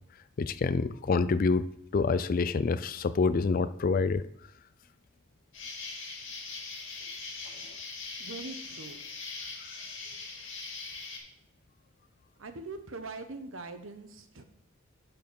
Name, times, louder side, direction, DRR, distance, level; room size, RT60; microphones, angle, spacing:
voice 1, 0.4-1.7 1.9-4.2, left 4 dB, 45° left, 14 dB, 0.4 m, -27 dB
Insect, 5.5-11.2, left 4 dB, 65° left, 2.4 m, -41 dB
voice 2, 8.2-9.0 12.4-14.4, right 3 dB, 70° right, 8 dB, 1.0 m, -42 dB
11.5 x 4.5 x 5.3 m, 0.74 s
head